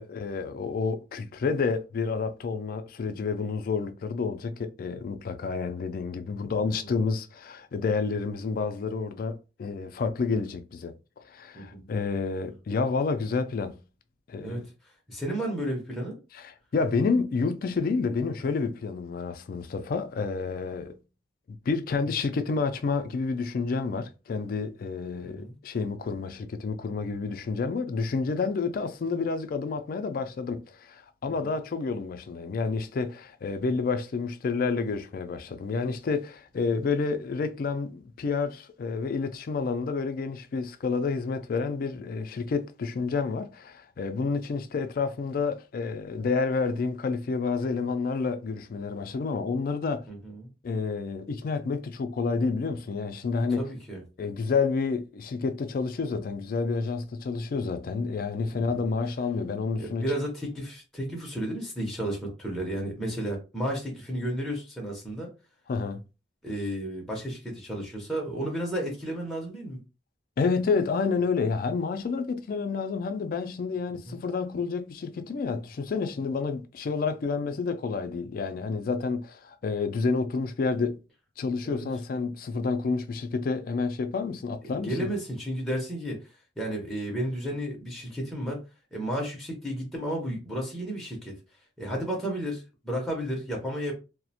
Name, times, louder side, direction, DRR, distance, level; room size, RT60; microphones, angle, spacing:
voice 1, 0.0-10.9 11.3-13.8 14.3-14.6 16.3-21.0 21.5-50.0 50.6-53.7 54.2-60.0 65.7-66.0 70.4-81.0 81.4-85.1, left 4 dB, 50° left, 0.3 m, -29 dB
voice 2, 6.7-7.0 11.5-11.9 14.4-16.2 25.2-25.6 31.3-31.5 50.1-50.5 53.6-54.0 58.5-58.9 59.8-65.3 66.4-69.8 74.1-74.2 81.6-81.9 84.6-88.6 88.9-91.3 91.8-93.9, right 1 dB, ahead, 0.6 m, -33 dB
2.4 x 2.0 x 2.7 m
head